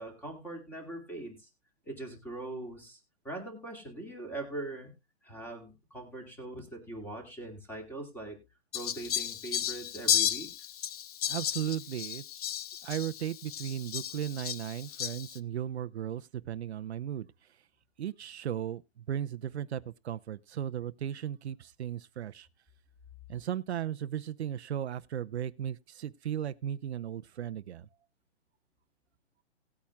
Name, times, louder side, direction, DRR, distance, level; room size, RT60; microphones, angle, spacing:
voice 1, 0.0-1.5 1.9-3.0 3.2-4.9 5.2-8.4 8.7-10.5, right 2 dB, 5° left, 2.4 m, -41 dB
Fowl, 8.7-15.4, left 10 dB, 35° left, 0.6 m, -34 dB
voice 2, 11.3-12.2 12.8-17.7 18.0-22.5 23.3-27.9, right 10 dB, 75° right, 0.7 m, -36 dB
18.5 x 8.6 x 2.3 m
hypercardioid pair, 160°, 33 cm